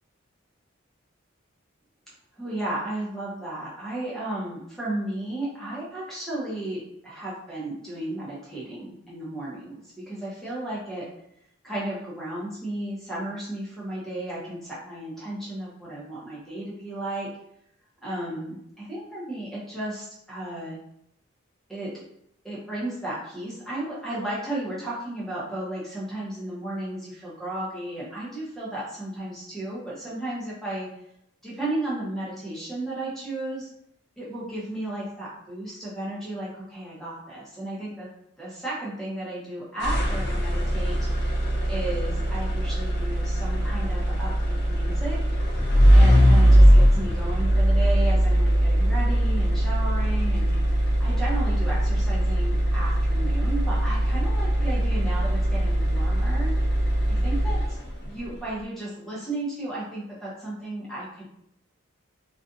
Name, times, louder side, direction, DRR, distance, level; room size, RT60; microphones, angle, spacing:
voice 1, 2.4-11.1 11.6-17.3 18.0-20.8 21.7-22.0 22.4-30.9 31.4-33.7 34.2-38.1 38.4-41.0 41.7-45.2 45.9-50.5 51.0-56.5 56.9-57.6 58.0-61.3, right 1 dB, ahead, -8 dB, 0.8 m, -34 dB
sound 1, 39.8-58.1, equal, 55° left, 0.5 m, -21 dB
2.5 x 2.4 x 2.4 m, 0.77 s
head